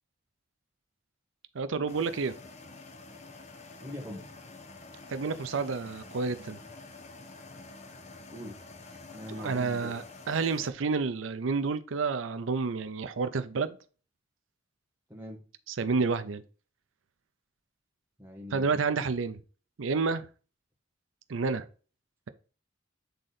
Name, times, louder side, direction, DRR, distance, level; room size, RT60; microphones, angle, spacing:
voice 1, 1.5-2.3 5.1-6.6 9.3-13.8 15.7-16.4 18.5-19.4 19.8-20.3 21.3-21.7, right 4 dB, 85° right, 0.5 m, -30 dB
sound 1, 1.9-10.7, left 3 dB, 35° left, 0.7 m, -48 dB
voice 2, 3.8-4.3 8.3-8.6 9.1-9.9 15.1-15.4 18.2-18.8, left 1 dB, 10° right, 1.5 m, -41 dB
8.0 x 3.8 x 4.1 m
head